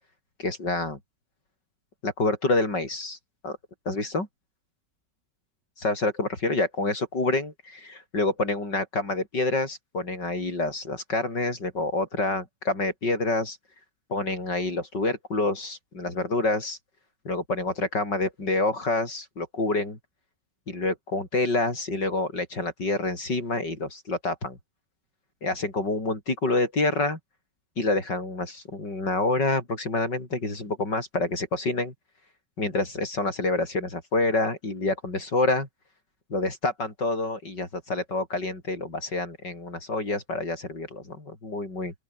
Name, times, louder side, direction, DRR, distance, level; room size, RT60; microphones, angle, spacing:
voice 1, 0.4-1.0 2.0-3.2 3.4-3.6 3.9-4.3 5.8-13.6 14.1-16.8 17.3-20.0 20.7-24.6 25.4-27.2 27.8-31.9 32.6-35.7 36.3-41.9, left 2 dB, 85° left, 7.2 m, -27 dB
open air
omnidirectional pair, 1.8 m